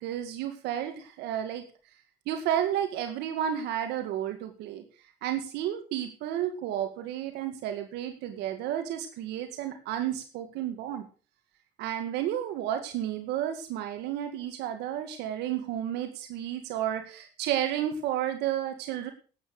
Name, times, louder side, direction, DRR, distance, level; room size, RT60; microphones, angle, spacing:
voice 1, 0.0-1.6 2.3-4.8 5.2-11.1 11.8-19.1, right 10 dB, 90° right, 6 dB, 2.0 m, -32 dB
12.5 x 9.2 x 6.6 m, 0.37 s
cardioid pair, 110°, 17 cm